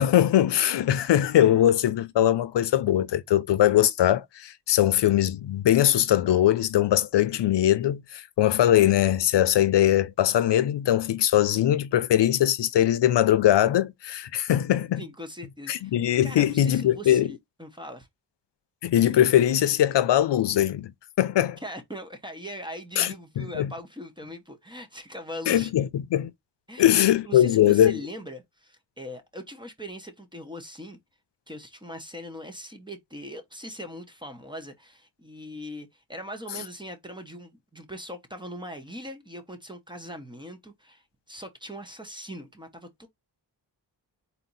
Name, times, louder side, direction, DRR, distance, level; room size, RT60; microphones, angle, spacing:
voice 1, 0.0-15.0 15.7-17.3 18.8-20.9 21.2-21.6 23.0-23.7 25.5-26.3 26.8-28.0, left 12 dB, 75° left, 0.6 m, -21 dB
voice 2, 15.0-15.9 16.2-18.1 21.6-25.7 26.7-26.9 27.3-31.0 31.5-41.0 41.3-43.1, equal, 10° right, 1.0 m, -40 dB
4.2 x 3.0 x 4.0 m
wide cardioid pair, 115°, 42 cm